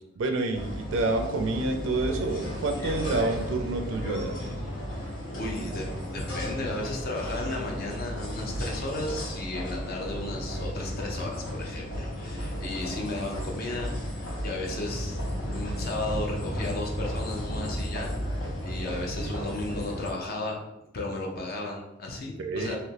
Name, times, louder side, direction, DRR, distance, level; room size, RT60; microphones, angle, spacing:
voice 1, 0.2-4.4 22.4-22.8, right 2 dB, 75° right, 5 dB, 0.4 m, -28 dB
sound 1, 0.5-20.1, equal, 85° left, 1.5 m, -34 dB
voice 2, 5.3-15.2 15.5-20.6 20.9-22.8, left 2 dB, 50° left, -1 dB, 0.6 m, -34 dB
3.3 x 2.9 x 2.8 m, 0.97 s
head